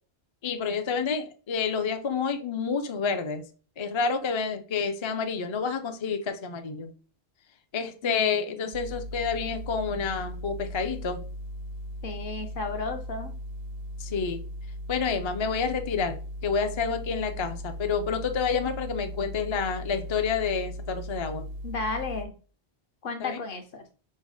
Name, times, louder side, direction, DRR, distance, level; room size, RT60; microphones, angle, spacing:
voice 1, 0.4-3.4 3.8-6.9 7.7-11.2 14.0-14.4 14.9-21.5 23.2-23.4, left 5 dB, 40° left, 6 dB, 0.4 m, -29 dB
voice 2, 8.0-8.3 12.0-13.3 21.6-22.4 23.0-23.8, left 3 dB, 60° left, 6 dB, 0.9 m, -33 dB
sound 1, 8.7-22.3, equal, 55° right, 0.5 m, -38 dB
5.4 x 2.0 x 4.7 m, 0.38 s
omnidirectional pair, 1.1 m